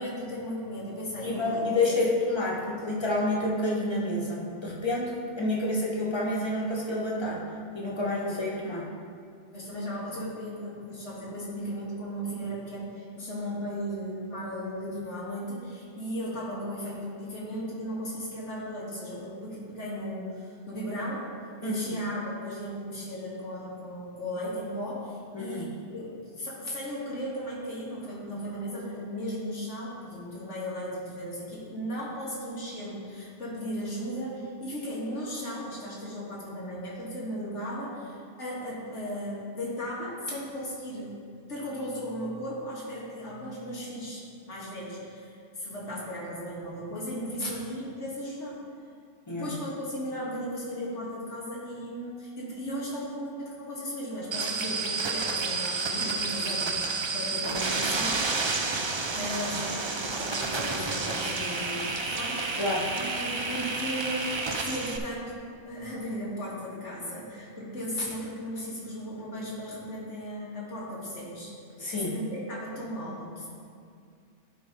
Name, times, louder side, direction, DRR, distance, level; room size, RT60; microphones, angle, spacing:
voice 1, 0.0-2.1 8.2-8.4 9.5-21.3 21.6-41.2 41.5-48.6 49.3-58.3 59.1-71.5 71.9-73.5, equal, 85° left, -6 dB, 2.1 m, -36 dB
voice 2, 1.2-7.4 7.7-8.9 21.6-21.8 25.3-25.7 49.3-49.5 62.6-62.9 71.8-72.1, left 2 dB, 25° left, -3 dB, 1.3 m, -29 dB
sound 1, 54.3-65.0, right 3 dB, 40° right, 0.4 m, -30 dB
11.5 x 3.9 x 5.3 m, 2.2 s
omnidirectional pair, 1.2 m